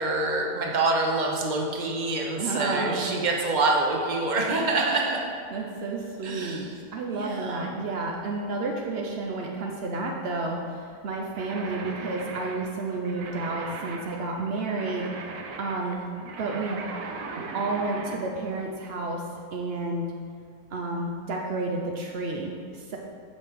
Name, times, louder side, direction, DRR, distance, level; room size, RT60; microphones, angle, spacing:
voice 1, 0.0-5.2 6.2-6.7 7.1-7.8 15.8-16.3, right 3 dB, 40° right, 0 dB, 0.7 m, -26 dB
voice 2, 2.4-3.1 5.5-6.7 6.9-15.1 15.6-16.0 16.4-16.9 17.4-19.2 19.5-20.1 20.7-23.0, right 3 dB, 80° right, 0 dB, 0.5 m, -31 dB
sound 1, 11.3-18.2, right 4 dB, 65° right, 1.1 m, -39 dB
8.2 x 5.9 x 3.6 m, 2.4 s
omnidirectional pair, 1.8 m